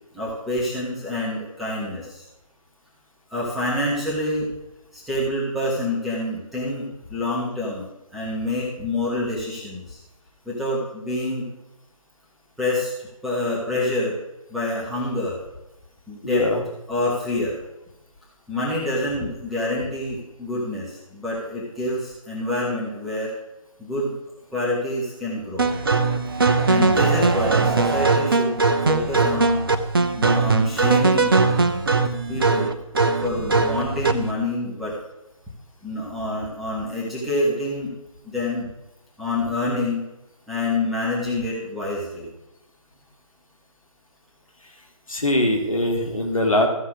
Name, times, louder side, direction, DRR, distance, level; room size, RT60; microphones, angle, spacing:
voice 1, 0.1-2.2 3.3-4.5 4.9-10.0 10.5-11.5 12.6-12.9 13.2-14.2 14.5-15.4 16.1-16.4 16.9-17.6 18.5-23.3 23.8-24.1 24.5-25.7 26.6-28.6 28.9-29.6 30.2-31.3 32.3-32.7 33.2-35.0 35.8-37.9 38.2-38.7 39.2-40.1 40.5-42.3, left 1 dB, ahead, -8 dB, 1.2 m, -27 dB
voice 2, 16.2-16.6 45.1-46.7, left 1 dB, 70° left, 2 dB, 2.7 m, -21 dB
sound 1, 25.6-34.3, right 3 dB, 40° right, 0.8 m, -20 dB
14.5 x 5.7 x 6.3 m, 0.93 s
figure-of-eight pair, 150°, 18 cm